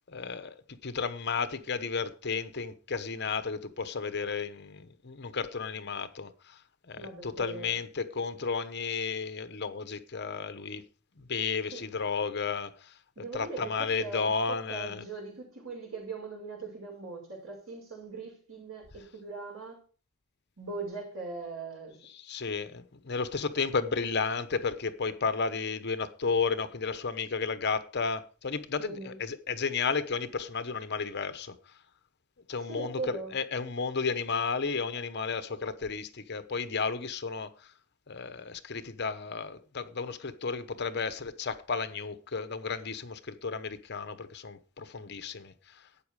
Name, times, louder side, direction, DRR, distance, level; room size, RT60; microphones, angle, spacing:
voice 1, 0.1-0.6 0.8-6.6 6.9-10.8 11.2-12.9 13.3-15.0 22.1-31.5 32.5-37.7 38.1-45.8, left 5 dB, 50° left, 0.9 m, -33 dB
voice 2, 7.0-7.7 11.7-11.8 13.2-19.8 20.6-22.0 28.8-29.1 32.7-33.3, right 3 dB, 80° right, 6.4 m, -40 dB
12.5 x 9.0 x 4.8 m
head